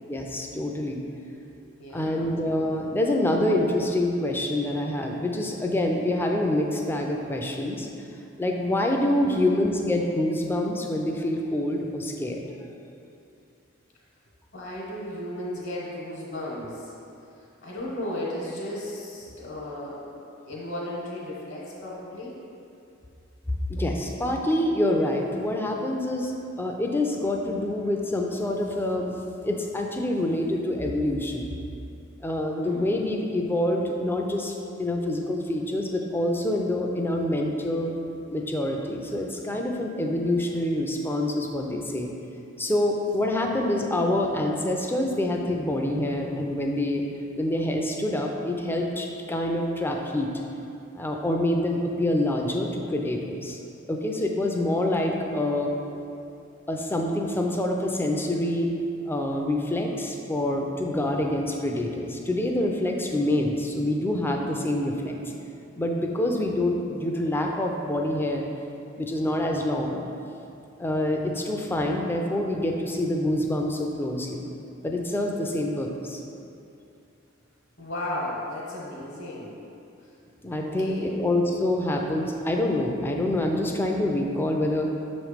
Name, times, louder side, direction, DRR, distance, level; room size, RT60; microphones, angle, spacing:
voice 1, 0.1-1.0 1.9-7.9 8.4-12.4 23.7-29.1 29.4-31.5 32.2-34.5 34.8-37.9 38.3-42.1 42.6-47.1 47.4-50.3 50.9-53.6 53.9-55.7 56.7-58.7 59.1-65.1 65.8-68.4 69.0-70.0 70.8-74.4 74.8-76.2 80.4-84.9, left 1 dB, 10° left, 1 dB, 0.4 m, -26 dB
voice 2, 1.8-2.4 9.2-9.6 14.5-16.9 17.4-22.3 32.6-33.0 42.0-42.1 77.8-79.6 80.0-80.1 80.6-81.2, left 1 dB, 60° left, -6 dB, 1.1 m, -35 dB
6.4 x 3.1 x 5.0 m, 2.7 s
head